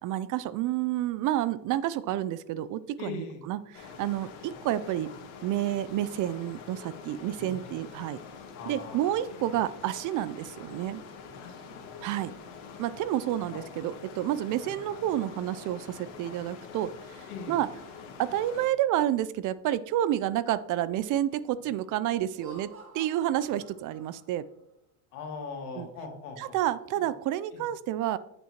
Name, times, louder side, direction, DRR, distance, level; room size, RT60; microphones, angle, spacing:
voice 1, 0.0-5.1 5.4-8.2 8.7-11.0 12.0-12.3 12.8-17.7 18.2-22.7 22.9-24.5 25.8-25.9 26.4-28.2, right 12 dB, 45° right, 17 dB, 0.4 m, -29 dB
voice 2, 3.0-3.4 4.4-4.5 7.4-7.8 8.5-9.2 11.4-11.8 13.5-13.6 14.6-14.8 17.3-17.6 25.1-26.6 27.0-27.1 27.5-27.6, left 4 dB, 85° left, 2 dB, 2.2 m, -41 dB
sound 1, 3.7-18.7, left 5 dB, 65° left, 1.8 m, -45 dB
Laughter, 22.2-24.6, right 3 dB, 30° right, 2.1 m, -50 dB
8.1 x 7.6 x 2.9 m, 0.80 s
supercardioid pair, 90°, 44 cm